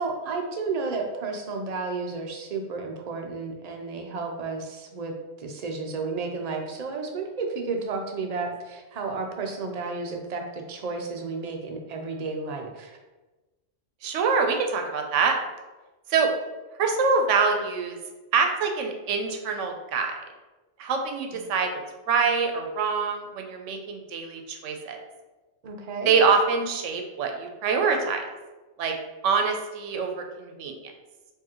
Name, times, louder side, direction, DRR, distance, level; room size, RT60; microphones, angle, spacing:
voice 1, 0.0-13.0 25.6-26.1, right 4 dB, 55° right, 3 dB, 0.4 m, -32 dB
voice 2, 14.0-15.3 16.1-16.3 16.8-18.0 18.3-20.2 20.8-21.7 22.1-25.0 26.1-28.2 28.8-28.9 29.2-30.7, right 5 dB, 85° right, 4 dB, 0.9 m, -25 dB
4.7 x 2.7 x 2.9 m, 1.2 s
omnidirectional pair, 1.3 m